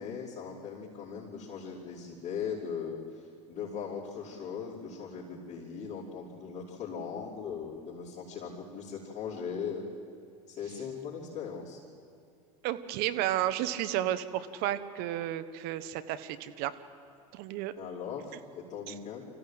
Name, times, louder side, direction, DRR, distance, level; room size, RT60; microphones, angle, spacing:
voice 1, 0.0-9.9 10.5-11.8 17.7-19.2, left 6 dB, 40° left, -8 dB, 4.9 m, -39 dB
voice 2, 12.6-16.7 17.3-17.7 18.9-19.0, right 13 dB, 60° right, 12 dB, 1.2 m, -32 dB
26.0 x 15.0 x 8.0 m, 2.5 s
hypercardioid pair, 85°, 18 cm